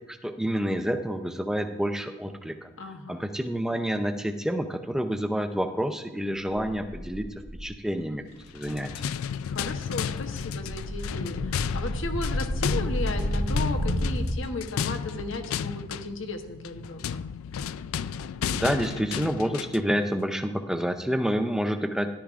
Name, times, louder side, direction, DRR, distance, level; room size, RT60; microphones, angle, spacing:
voice 1, 0.1-2.7 3.1-7.3 7.6-8.2 8.5-8.9 18.5-22.1, equal, 5° right, 7 dB, 0.5 m, -28 dB
voice 2, 2.8-3.3 9.5-17.3, left 2 dB, 65° left, 5 dB, 1.0 m, -35 dB
sound 1, 6.7-7.7 8.3-8.5 8.7-14.3, equal, 60° right, 2.0 m, -31 dB
sound 2, 8.5-19.9, left 7 dB, 80° left, 0.3 m, -33 dB
13.5 x 11.5 x 2.5 m, 1.1 s
head